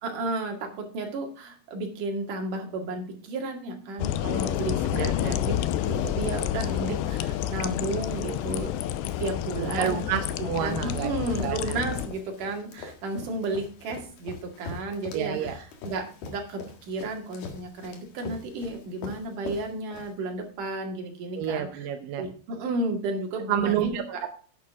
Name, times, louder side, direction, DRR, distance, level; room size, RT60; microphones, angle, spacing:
voice 1, 0.0-8.7 9.2-10.1 10.4-21.7 22.2-24.2, right 2 dB, 55° right, 2 dB, 3.4 m, -33 dB
sound 1, 4.0-12.1, left 11 dB, 90° left, 2.9 m, -29 dB
Run, 4.3-20.5, left 3 dB, 65° left, 3.6 m, -44 dB
voice 2, 4.9-5.4 6.8-6.9 9.6-11.8 15.1-15.6 21.4-22.2 23.5-24.3, right 10 dB, 75° right, 6 dB, 2.1 m, -30 dB
10.5 x 9.2 x 3.6 m, 0.41 s
omnidirectional pair, 5.0 m